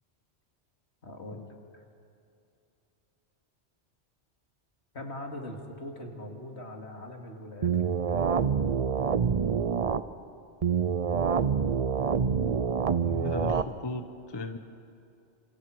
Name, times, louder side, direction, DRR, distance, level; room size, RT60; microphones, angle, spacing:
voice 1, 1.0-1.8 4.9-8.3, left 1 dB, 70° left, 2 dB, 2.7 m, -42 dB
sound 1, 7.6-10.0 10.6-13.6, right 6 dB, 40° right, 0.6 m, -26 dB
voice 2, 13.0-14.6, left 2 dB, 25° left, 7 dB, 1.0 m, -36 dB
29.0 x 27.5 x 4.8 m, 2.6 s
omnidirectional pair, 1.2 m